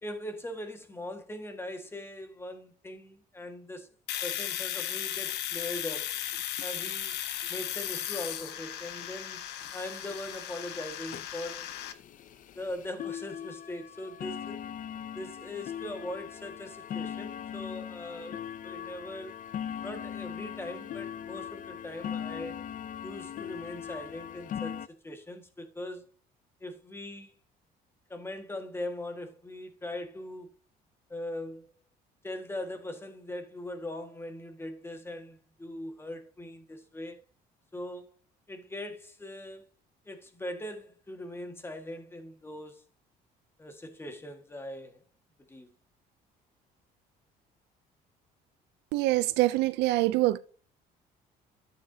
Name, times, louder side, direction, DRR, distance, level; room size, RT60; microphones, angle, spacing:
voice 1, 0.0-3.9 4.2-6.1 6.6-7.1 7.5-9.4 9.7-11.8 12.6-14.6 15.1-19.3 19.8-22.6 23.0-26.1 26.6-27.4 28.1-30.5 31.1-31.7 32.2-37.2 37.7-38.1 38.5-39.7 40.1-42.8 43.6-45.0 45.5-45.7, left 1 dB, 15° left, 1.7 m, -40 dB
Domestic sounds home sounds, 4.1-11.9, left 11 dB, 80° left, 0.9 m, -36 dB
sound 1, 5.1-5.2 5.5-5.6 5.8-6.0 6.3-6.7 7.4-7.5 8.0-8.1 8.5-8.6 9.0-9.1 9.6-9.7 10.1-10.3 10.7-10.8 11.1-24.9, left 9 dB, 50° left, 0.6 m, -40 dB
voice 2, 48.9-50.4, right 18 dB, 85° right, 0.5 m, -25 dB
13.0 x 6.8 x 2.8 m
cardioid pair, 110°, 17 cm